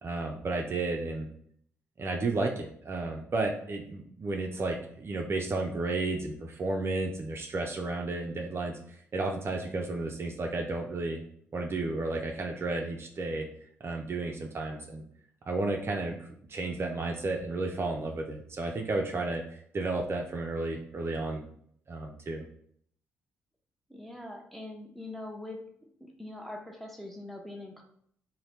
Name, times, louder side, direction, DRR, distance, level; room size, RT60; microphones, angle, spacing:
voice 1, 0.0-1.3 2.0-11.2 11.5-13.5 13.8-15.0 15.5-21.4 21.9-22.4, right 2 dB, 40° right, 2 dB, 0.5 m, -32 dB
voice 2, 23.9-25.6 26.0-27.8, left 1 dB, 5° left, 1 dB, 0.7 m, -42 dB
2.7 x 2.1 x 3.2 m, 0.65 s
hypercardioid pair, 50°, 6 cm